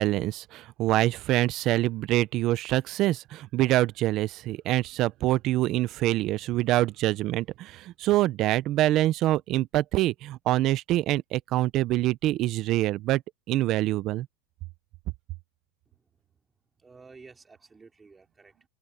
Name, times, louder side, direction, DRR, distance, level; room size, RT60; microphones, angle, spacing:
voice 1, 0.0-13.2 13.5-14.3, right 15 dB, 30° right, 0.5 m, -25 dB
voice 2, 16.8-18.7, right 4 dB, 10° right, 2.5 m, -52 dB
supercardioid pair, 175°, 0 cm